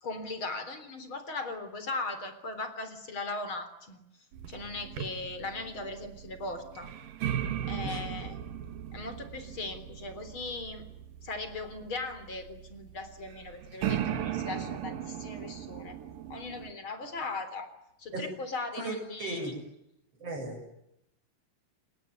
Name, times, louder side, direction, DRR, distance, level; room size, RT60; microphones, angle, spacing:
voice 1, 0.0-4.0 4.5-6.9 7.7-8.5 8.9-10.8 11.2-16.0 16.3-17.7 18.0-19.5, left 3 dB, 30° left, 11 dB, 3.9 m, -38 dB
sound 1, 4.3-16.7, right 10 dB, 60° right, 2.8 m, -37 dB
voice 2, 18.8-19.6 20.2-20.8, right 2 dB, 35° right, 3 dB, 9.0 m, -36 dB
28.0 x 21.5 x 9.7 m, 0.81 s
omnidirectional pair, 5.0 m